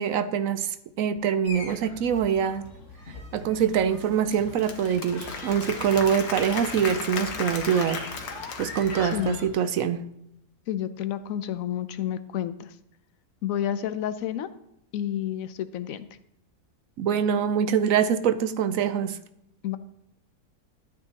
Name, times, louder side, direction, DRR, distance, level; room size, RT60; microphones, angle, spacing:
voice 1, 0.0-2.6 3.3-8.1 8.6-10.1 17.0-19.2, right 8 dB, 65° right, 0.9 m, -24 dB
sound 1, 1.4-9.5, left 3 dB, 50° left, 1.8 m, -42 dB
Applause / Crowd, 4.1-9.5, left 5 dB, 80° left, 1.7 m, -36 dB
voice 2, 9.0-9.4 10.7-12.7 13.4-14.5 14.9-16.1 19.6-19.8, left 10 dB, 65° left, 1.0 m, -30 dB
13.5 x 8.9 x 2.9 m
omnidirectional pair, 1.7 m